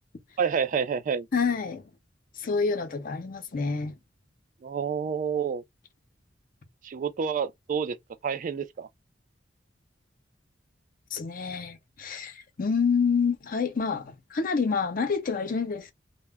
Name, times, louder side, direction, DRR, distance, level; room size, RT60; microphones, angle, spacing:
voice 1, 0.4-1.3 4.6-5.6 6.8-8.0 8.2-8.9, right 6 dB, 45° right, 0.3 m, -28 dB
voice 2, 1.3-1.9 2.4-4.0 11.1-15.9, left 5 dB, 50° left, 0.5 m, -28 dB
2.1 x 2.0 x 3.3 m
head